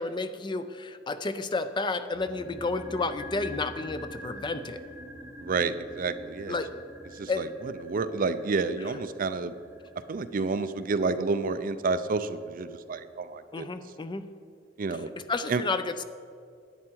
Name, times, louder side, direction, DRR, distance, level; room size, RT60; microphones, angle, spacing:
voice 1, 0.0-4.8 6.5-6.7 7.3-7.5 13.5-14.2 15.3-16.0, left 3 dB, 25° left, 11 dB, 0.4 m, -31 dB
sound 1, 2.1-12.4 12.7-12.8, equal, 15° right, 0.8 m, -46 dB
voice 2, 5.4-6.6 7.1-9.5 10.1-13.7 14.8-15.1 15.5-15.6, right 4 dB, 50° right, 12 dB, 0.4 m, -30 dB
11.0 x 8.7 x 4.6 m, 2.3 s
head